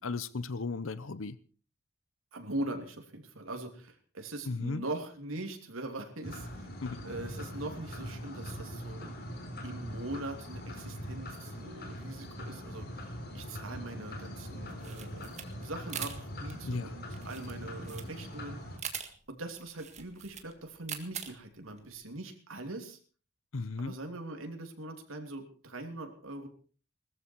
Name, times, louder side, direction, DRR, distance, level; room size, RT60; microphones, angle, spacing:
voice 1, 0.0-1.4 4.5-4.8 6.8-7.0 16.6-17.0 23.5-23.9, left 3 dB, 75° left, 0.8 m, -35 dB
voice 2, 2.3-6.7 7.0-9.2 9.6-18.6 19.3-23.0 23.8-26.5, right 2 dB, 80° right, 3.0 m, -41 dB
sound 1, 6.2-18.8, equal, 50° left, 3.6 m, -42 dB
sound 2, 14.7-22.0, right 8 dB, 35° right, 1.9 m, -43 dB
19.5 x 14.0 x 4.6 m
head